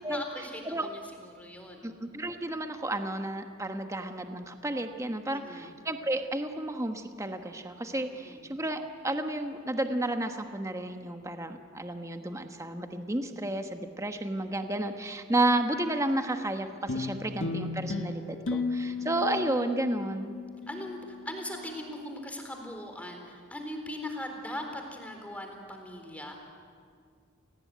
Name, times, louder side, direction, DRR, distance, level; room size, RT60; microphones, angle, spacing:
voice 1, 0.1-1.9 5.3-5.7 8.1-8.5 18.8-19.0 20.7-21.0 21.3-26.4, left 1 dB, 5° left, 3 dB, 3.9 m, -40 dB
voice 2, 1.8-20.4, right 1 dB, 15° right, 6 dB, 1.3 m, -32 dB
sound 1, 16.9-21.5, left 3 dB, 75° left, 1.6 m, -35 dB
28.5 x 19.0 x 9.5 m, 2.1 s
head